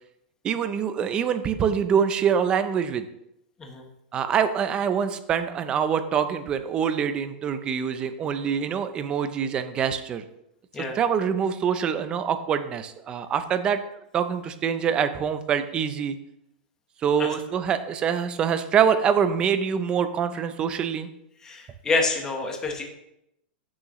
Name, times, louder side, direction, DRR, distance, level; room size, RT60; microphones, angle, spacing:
voice 1, 0.4-3.1 4.1-10.2 10.9-13.8 14.1-16.2 17.0-21.1, right 7 dB, 15° right, 10 dB, 0.5 m, -25 dB
voice 2, 21.4-22.8, left 3 dB, 10° left, 2 dB, 1.1 m, -27 dB
14.5 x 6.3 x 3.1 m, 0.80 s
supercardioid pair, 170°, 6 cm